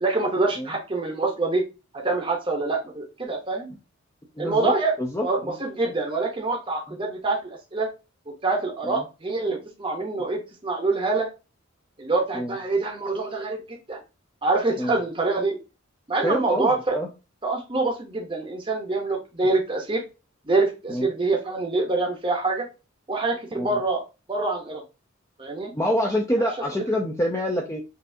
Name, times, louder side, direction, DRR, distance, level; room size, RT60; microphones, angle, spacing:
voice 1, 0.0-1.6 1.9-3.7 4.4-4.9 5.2-7.9 8.4-11.3 12.0-14.0 14.4-15.6 16.1-17.0 17.4-20.0 20.5-22.7 23.1-24.0 24.3-24.8 25.4-25.7, right 3 dB, 25° right, 1 dB, 0.8 m, -25 dB
voice 2, 4.4-5.5 6.9-7.0 8.8-8.9 12.3-12.6 14.8-15.0 16.2-17.1 20.9-21.1 23.6-23.8 25.7-27.8, equal, 15° left, 1 dB, 0.5 m, -26 dB
5.5 x 2.6 x 2.6 m, 0.29 s
head